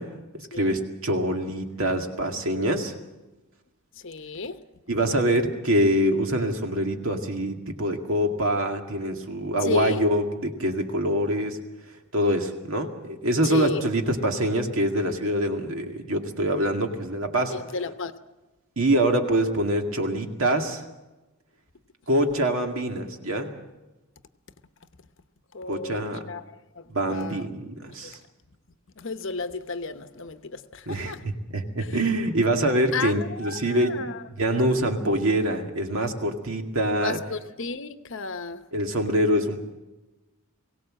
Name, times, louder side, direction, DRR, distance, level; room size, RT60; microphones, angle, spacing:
voice 1, 0.0-2.9 4.9-11.6 12.1-17.6 18.8-20.8 22.1-23.5 25.7-26.2 26.9-28.2 30.9-34.0 34.4-37.2 38.7-39.6, right 1 dB, 65° right, 4 dB, 2.2 m, -25 dB
voice 2, 0.5-0.8 4.0-4.6 9.6-10.0 13.4-13.9 17.5-18.1 25.5-27.5 28.0-28.1 29.0-31.2 31.8-32.0 32.9-34.2 34.5-34.8 37.0-38.6, left 4 dB, 55° left, 10 dB, 0.9 m, -33 dB
22.0 x 17.5 x 7.6 m, 1.1 s
head